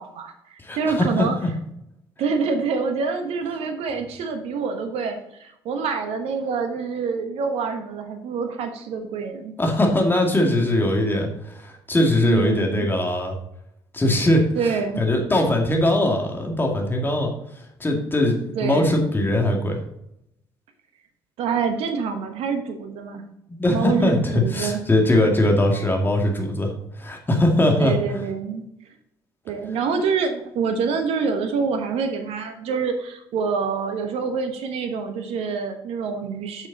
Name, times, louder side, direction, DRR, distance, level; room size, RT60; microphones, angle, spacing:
voice 1, 0.0-1.4 2.2-9.5 12.2-12.9 14.6-15.0 18.5-19.0 21.4-23.2 23.7-24.8 27.8-28.6 29.4-36.7, right 5 dB, 55° right, 6 dB, 1.2 m, -26 dB
voice 2, 0.6-1.5 9.6-13.4 13.9-14.4 15.0-17.3 17.8-19.8 23.5-27.9, left 1 dB, 15° left, 1 dB, 2.3 m, -21 dB
8.7 x 6.2 x 4.2 m, 0.78 s
figure-of-eight pair, 50°, 12 cm